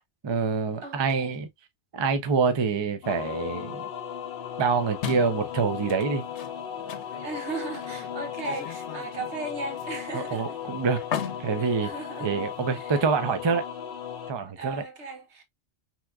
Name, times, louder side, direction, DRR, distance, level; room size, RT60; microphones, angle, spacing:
voice 1, 0.2-1.5 1.9-3.9 4.6-6.3 10.1-11.0 11.4-11.9 12.2-13.6 14.3-14.8, right 5 dB, 35° right, 0.4 m, -26 dB
voice 2, 0.8-1.4 7.1-10.6 11.6-12.3 12.7-12.9 14.6-15.4, right 3 dB, 80° right, 1.3 m, -37 dB
sound 1, 3.0-14.3, left 9 dB, 60° left, 0.7 m, -36 dB
sound 2, 5.0-12.8, left 8 dB, 85° left, 0.9 m, -39 dB
3.5 x 2.9 x 2.3 m
omnidirectional pair, 1.1 m